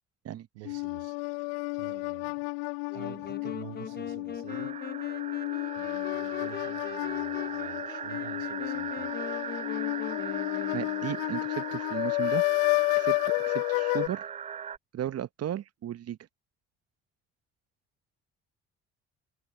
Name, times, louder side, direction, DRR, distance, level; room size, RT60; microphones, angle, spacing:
voice 1, 0.5-1.2 1.7-2.5 2.9-4.8 5.8-9.1, right 25 dB, 75° right, 1.4 m, -49 dB
sound 1, 0.6-14.1, left 32 dB, 70° left, 0.6 m, -31 dB
sound 2, 2.9-11.3, left 6 dB, 30° left, 1.1 m, -42 dB
sound 3, 4.5-14.8, right 7 dB, 20° right, 0.4 m, -39 dB
voice 2, 10.7-12.4 13.0-14.3 14.9-16.2, right 11 dB, 45° right, 1.0 m, -35 dB
hypercardioid pair, 50°, 35 cm